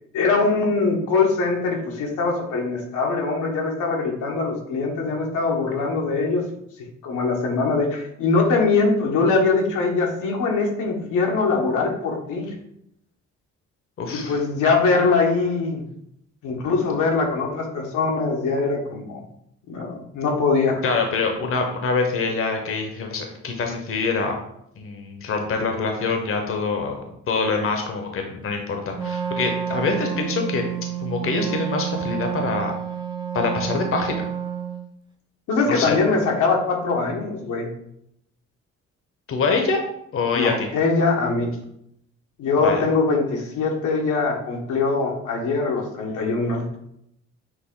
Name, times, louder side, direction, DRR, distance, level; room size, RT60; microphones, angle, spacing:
voice 1, 0.1-6.4 7.0-12.5 14.1-15.8 16.4-19.2 19.7-20.8 35.5-37.7 40.3-41.5 42.4-46.7, left 4 dB, 85° left, 0 dB, 1.1 m, -22 dB
voice 2, 14.0-14.4 20.8-24.4 24.8-30.6 31.0-32.7 33.3-34.2 35.7-36.0 39.3-39.8 40.1-40.7 42.6-42.9, left 4 dB, 45° left, 4 dB, 0.8 m, -25 dB
Wind instrument woodwind instrument, 28.9-34.9, right 8 dB, 15° right, 0.5 m, -29 dB
6.3 x 2.1 x 3.6 m, 0.74 s
cardioid pair, 90°, 30 cm